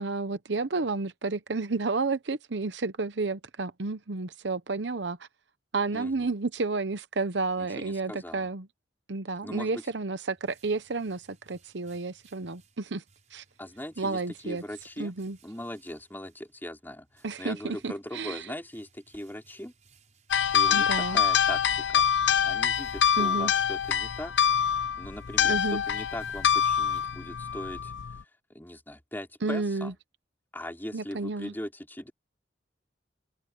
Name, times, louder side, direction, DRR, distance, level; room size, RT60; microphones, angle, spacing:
voice 1, 0.0-5.2 5.7-8.7 9.1-13.0 13.3-13.4 14.0-14.6 15.0-15.4 17.2-18.4 20.7-21.2 23.2-23.5 25.4-25.8 29.4-29.9 30.9-31.5, right 3 dB, 75° right, 0.9 m, -31 dB
voice 2, 5.9-6.3 7.6-8.5 9.4-9.8 13.6-15.1 15.4-19.7 20.5-24.3 24.6-29.9 30.5-32.1, left 1 dB, 10° left, 4.4 m, -40 dB
sound 1, 10.0-27.7, right 4 dB, 40° right, 7.0 m, -63 dB
sound 2, 20.3-28.2, left 8 dB, 90° left, 0.6 m, -25 dB
open air
head